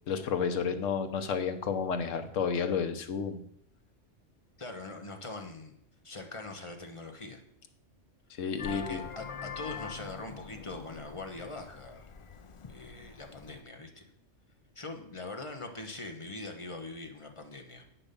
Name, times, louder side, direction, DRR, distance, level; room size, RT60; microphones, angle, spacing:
voice 1, 0.1-3.4 8.4-9.0, left 6 dB, 85° left, 9 dB, 1.3 m, -31 dB
voice 2, 4.6-5.8 6.0-7.4 8.6-12.1 12.7-14.1 14.7-17.8, left 2 dB, 25° left, 4 dB, 1.1 m, -42 dB
Vehicle horn car horn honking, 8.6-13.6, left 6 dB, 55° left, 0.3 m, -44 dB
8.2 x 5.8 x 6.8 m, 0.72 s
omnidirectional pair, 1.3 m